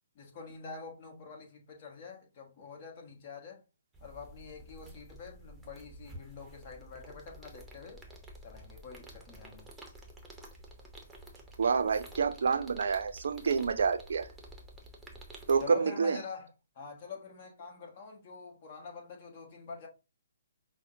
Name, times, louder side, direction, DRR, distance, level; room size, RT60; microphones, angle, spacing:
voice 1, 0.1-3.6 4.0-8.0 8.4-9.7 15.6-16.5 16.7-19.9, left 5 dB, 40° left, 1.1 m, -46 dB
sound 1, 3.9-15.7, right 1 dB, 5° right, 0.8 m, -51 dB
voice 2, 11.6-14.3 15.5-16.2, right 5 dB, 65° right, 0.5 m, -28 dB
5.5 x 2.1 x 2.7 m
figure-of-eight pair, 135°, 0 cm